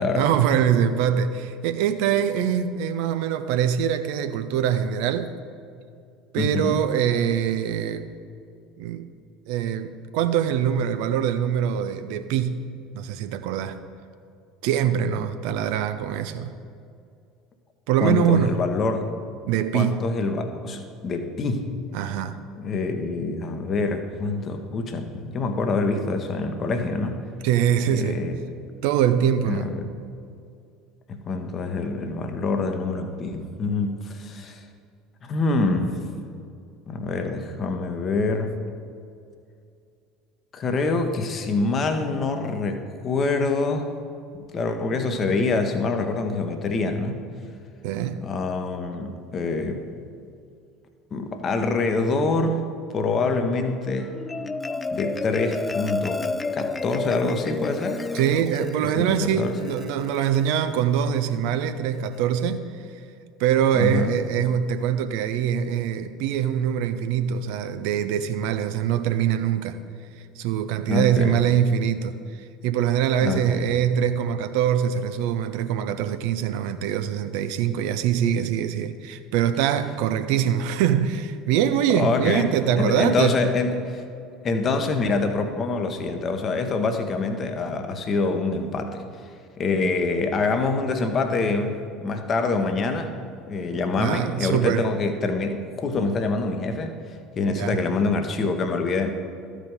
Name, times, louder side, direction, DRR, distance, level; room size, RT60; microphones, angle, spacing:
voice 1, 0.1-5.3 6.3-8.1 8.8-9.1 9.5-12.7 12.9-13.8 14.6-16.6 17.9-18.6 19.5-20.0 21.9-22.4 27.4-28.2 28.8-29.7 47.8-48.2 58.1-62.8 63.4-69.8 70.4-83.4 94.0-94.9 97.5-97.8, right 9 dB, 55° right, 0.4 m, -23 dB
voice 2, 6.4-6.8 18.0-19.0 19.7-21.7 22.6-27.3 27.9-28.5 29.5-29.9 31.1-34.6 35.2-36.0 36.9-38.5 40.5-43.9 44.5-47.3 48.2-49.9 51.1-52.6 52.9-54.2 54.9-56.3 56.5-58.1 59.0-59.6 63.7-64.2 70.9-71.4 73.2-73.6 81.9-84.0 84.4-89.0 89.6-93.1 93.5-97.0 97.4-99.1, left 3 dB, 35° left, 0.9 m, -25 dB
Marimba xylophone, 54.0-60.6, left 3 dB, 20° left, 0.3 m, -31 dB
13.0 x 4.9 x 5.2 m
figure-of-eight pair, 65°, 0 cm